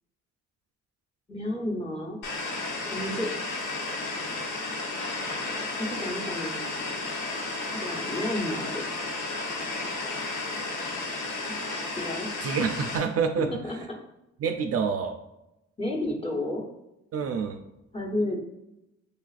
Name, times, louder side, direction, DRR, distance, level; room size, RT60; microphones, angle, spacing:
voice 1, 1.3-2.2 2.8-3.3 5.8-6.6 7.7-8.8 12.0-12.3 13.6-13.8 15.8-16.6 17.9-18.4, left 1 dB, 20° left, -2 dB, 1.1 m, -31 dB
sound 1, 2.2-13.0, left 3 dB, 85° left, 1.0 m, -33 dB
voice 2, 12.4-13.5 14.4-15.2 17.1-17.6, right 6 dB, 50° right, 6 dB, 0.4 m, -27 dB
6.6 x 2.3 x 2.4 m, 0.90 s
cardioid pair, 90°, 30 cm